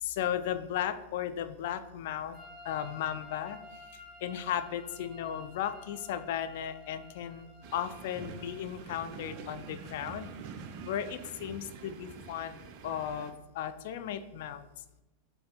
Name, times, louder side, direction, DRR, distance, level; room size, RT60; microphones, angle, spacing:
voice 1, 0.0-2.3 2.7-3.6 4.2-7.4 7.7-10.3 10.8-12.6 12.8-14.6, left 10 dB, 55° left, 10 dB, 0.3 m, -35 dB
sound 1, 2.3-11.4, left 2 dB, 5° right, 1.4 m, -53 dB
sound 2, 7.6-13.3, right 6 dB, 45° right, 0.4 m, -46 dB
7.5 x 2.6 x 2.2 m, 0.99 s
figure-of-eight pair, 90°, 0 cm